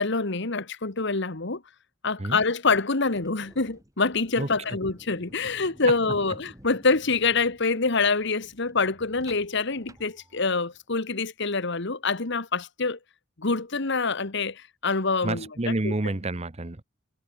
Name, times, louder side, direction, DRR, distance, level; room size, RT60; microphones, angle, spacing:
voice 1, 0.0-1.6 2.0-13.0 13.4-15.9, left 4 dB, 65° left, 1.7 m, -26 dB
sound 1, 3.0-10.8, right 1 dB, 15° right, 3.5 m, -53 dB
voice 2, 15.2-16.8, right 2 dB, 35° right, 1.1 m, -29 dB
head